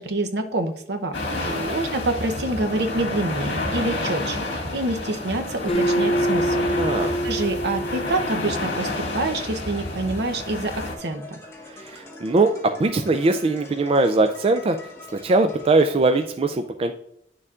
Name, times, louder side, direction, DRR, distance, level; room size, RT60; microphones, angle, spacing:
voice 1, 0.0-6.6 7.2-11.4, right 2 dB, 65° right, 6 dB, 0.8 m, -27 dB
sound 1, 1.1-11.0, left 2 dB, 70° left, 1.8 m, -29 dB
voice 2, 1.3-1.8 6.8-7.1 11.7-14.9 15.2-16.9, right 2 dB, 35° right, 7 dB, 0.4 m, -21 dB
sound 2, 3.7-16.3, left 1 dB, 15° left, 1.1 m, -45 dB
Acoustic guitar, 5.7-9.1, right 1 dB, 35° left, 0.8 m, -26 dB
9.7 x 6.7 x 2.4 m, 0.75 s
head